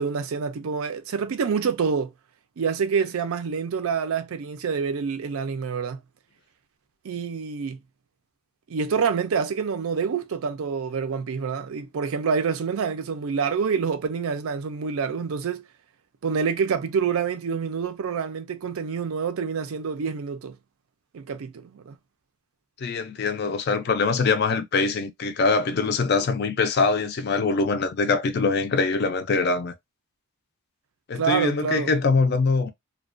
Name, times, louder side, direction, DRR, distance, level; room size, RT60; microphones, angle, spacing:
voice 1, 0.0-2.1 2.6-6.0 7.0-7.8 8.7-15.6 16.2-20.6 21.1-22.0 31.1-31.9, right 6 dB, 75° right, 0.4 m, -27 dB
voice 2, 22.8-29.7 31.1-32.7, left 4 dB, 50° left, 0.4 m, -23 dB
2.3 x 2.2 x 2.5 m
head